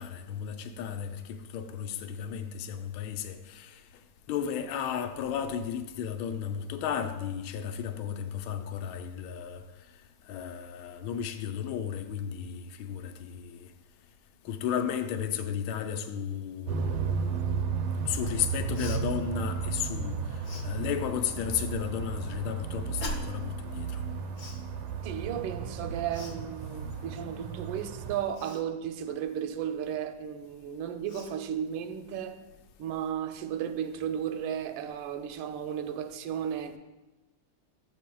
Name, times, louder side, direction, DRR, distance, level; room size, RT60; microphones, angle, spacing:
voice 1, 0.0-3.8 4.3-9.6 10.3-13.7 14.4-17.2 18.0-24.0, left 8 dB, 80° left, 1.4 m, -34 dB
sound 1, 16.7-28.1, right 6 dB, 90° right, 1.5 m, -34 dB
Cough, 18.7-19.0 20.4-20.7 23.0-23.4 24.3-24.6 26.1-26.4 28.3-28.6 30.5-30.6 31.0-31.4, left 2 dB, 55° left, 0.9 m, -40 dB
voice 2, 25.0-32.4 32.8-36.8, right 9 dB, 75° right, 1.3 m, -34 dB
13.0 x 8.2 x 2.3 m
omnidirectional pair, 2.3 m